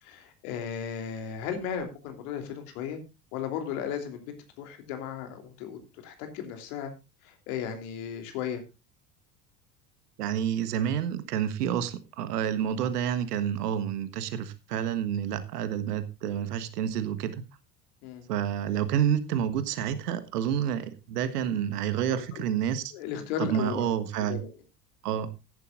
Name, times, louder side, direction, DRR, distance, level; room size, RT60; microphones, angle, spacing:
voice 1, 0.0-3.0 3.3-6.9 7.2-8.6 18.0-18.3 22.3-22.4 22.9-23.9 24.3-24.5, left 8 dB, 60° left, 6 dB, 3.3 m, -35 dB
voice 2, 10.2-17.4 18.3-22.9 23.4-24.4 25.0-25.3, right 9 dB, 70° right, 13 dB, 1.6 m, -29 dB
15.0 x 11.0 x 2.6 m, 0.26 s
figure-of-eight pair, 65°, 49 cm